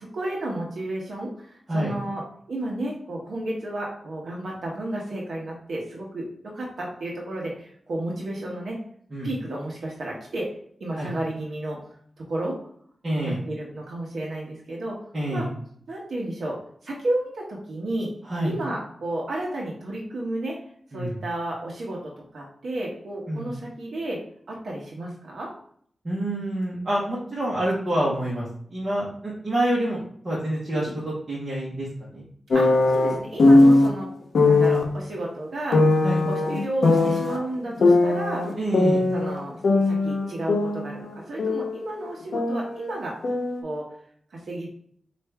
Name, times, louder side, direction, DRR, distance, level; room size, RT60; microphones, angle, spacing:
voice 1, 0.0-2.2 2.5-8.8 9.2-10.5 10.8-11.8 12.3-12.6 13.2-15.0 15.3-15.5 15.9-18.1 18.4-20.6 20.9-24.2 24.5-25.5 30.7-30.9 32.5-34.1 34.4-38.4 39.1-43.1 43.6-43.9 44.3-44.7, right 1 dB, 75° right, -3 dB, 0.8 m, -32 dB
voice 2, 13.0-13.4 15.1-15.5 18.3-18.5 20.9-21.1 23.3-23.5 26.0-30.0 30.2-31.9 32.1-32.2 36.0-36.2 38.6-39.0, right 1 dB, 35° right, -6 dB, 1.0 m, -27 dB
sound 1, 32.5-33.9 34.3-34.9 35.7-37.4 37.8-39.4 39.6-41.8 42.1-43.6, left 2 dB, 75° left, 0.6 m, -19 dB
4.5 x 2.5 x 3.3 m, 0.62 s
wide cardioid pair, 130°, 0 cm